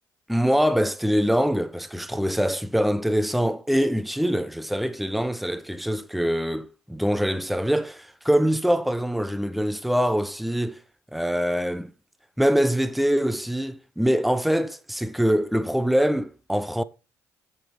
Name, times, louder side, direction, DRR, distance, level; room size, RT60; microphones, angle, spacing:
voice 1, 0.3-10.8 11.1-11.9 12.4-16.8, equal, ahead, 0.8 m, -24 dB
7.9 x 6.8 x 5.2 m
supercardioid pair, 70°, 8 cm